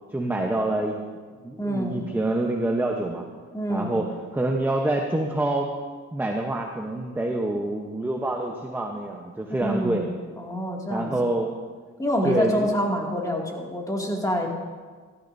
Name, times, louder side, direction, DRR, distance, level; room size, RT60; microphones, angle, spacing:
voice 1, 0.1-1.0 1.4-3.2 3.7-5.7 6.1-10.1 10.9-11.6 12.2-12.7, right 2 dB, 5° right, 1 dB, 0.9 m, -26 dB
voice 2, 1.6-2.0 3.5-4.0 9.6-10.0 10.4-11.1 12.0-14.5, equal, 10° left, -1 dB, 2.3 m, -26 dB
14.5 x 13.0 x 2.7 m, 1.5 s
cardioid pair, 90°, 30 cm